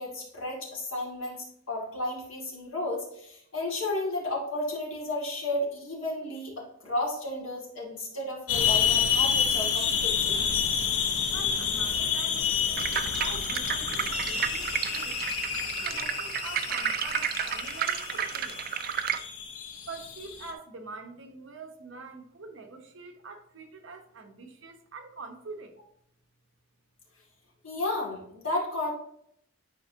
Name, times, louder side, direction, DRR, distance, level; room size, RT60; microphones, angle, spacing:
voice 1, 0.0-10.4 27.6-28.9, left 2 dB, 65° left, -2 dB, 2.4 m, -33 dB
sound 1, 8.5-20.5, left 7 dB, 85° left, 0.9 m, -29 dB
voice 2, 11.3-15.2 15.8-18.6 19.9-25.7, right 4 dB, 60° right, 4 dB, 1.0 m, -45 dB
sound 2, 12.8-19.2, right 9 dB, 40° right, 0.4 m, -32 dB
10.0 x 4.5 x 2.8 m, 0.71 s
head